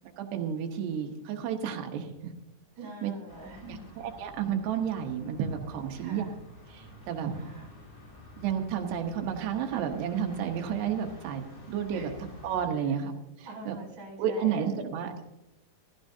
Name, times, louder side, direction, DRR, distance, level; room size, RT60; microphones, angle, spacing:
voice 1, 0.0-2.3 3.0-3.1 3.7-6.3 6.7-7.3 8.4-11.4 11.7-12.1 12.4-13.8 14.2-15.3, right 8 dB, 90° right, 3 dB, 3.3 m, -31 dB
voice 2, 2.8-3.9 6.0-6.3 7.4-7.7 11.9-12.2 13.5-14.9, right 2 dB, 35° right, 0 dB, 4.5 m, -44 dB
sound 1, 3.3-12.7, equal, 40° left, 4.9 m, -50 dB
16.0 x 15.0 x 2.7 m, 0.94 s
omnidirectional pair, 4.7 m